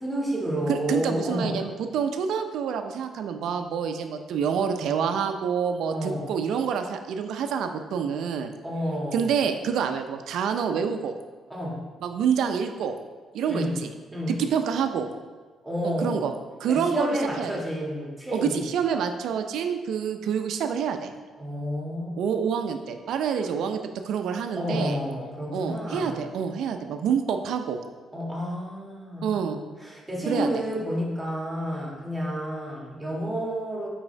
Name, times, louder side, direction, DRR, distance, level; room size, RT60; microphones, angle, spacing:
voice 1, 0.0-1.6 5.9-6.3 8.6-9.3 11.5-11.8 13.5-13.8 14.1-14.4 15.6-16.2 16.7-18.6 21.4-22.5 23.3-23.5 24.5-26.2 28.1-29.3 29.8-33.9, equal, 10° right, -4 dB, 1.6 m, -30 dB
voice 2, 0.7-8.5 9.1-11.1 12.0-12.9 13.3-13.6 14.4-15.1 15.8-16.3 16.6-17.5 18.3-21.1 22.2-23.8 24.0-25.0 25.5-27.8 29.2-29.6 30.3-30.5, right 7 dB, 80° right, 7 dB, 0.5 m, -27 dB
6.1 x 4.8 x 3.2 m, 1.4 s
cardioid pair, 90°, 0 cm